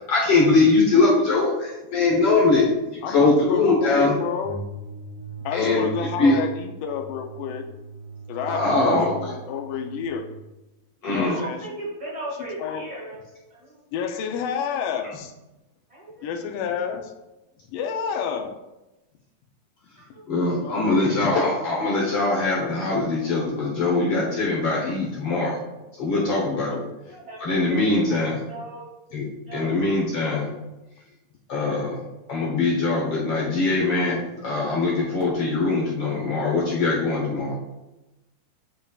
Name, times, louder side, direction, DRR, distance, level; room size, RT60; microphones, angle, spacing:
voice 1, 0.1-4.2 5.5-5.9 6.2-6.4 8.5-9.1 11.0-11.4 20.3-25.5 26.0-26.7 27.4-28.4 29.1-29.2 29.5-30.5 31.5-32.0 32.3-37.5, left 3 dB, 60° left, -4 dB, 1.6 m, -22 dB
voice 2, 3.0-4.6 5.4-7.6 8.3-10.2 11.0-11.7 12.6-12.9 13.9-15.3 16.2-17.1 17.7-18.5 20.5-21.3 24.6-25.0 26.5-26.9, left 7 dB, 80° left, 4 dB, 2.2 m, -30 dB
sound 1, 4.4-10.4, right 6 dB, 75° right, 3.9 m, -39 dB
voice 3, 11.2-13.2 13.5-13.8 15.9-16.3 20.0-20.2 20.8-21.0 27.1-28.0 28.5-28.8 29.4-29.8, right 1 dB, 15° right, -5 dB, 1.4 m, -37 dB
8.6 x 5.4 x 2.4 m, 0.99 s
omnidirectional pair, 4.0 m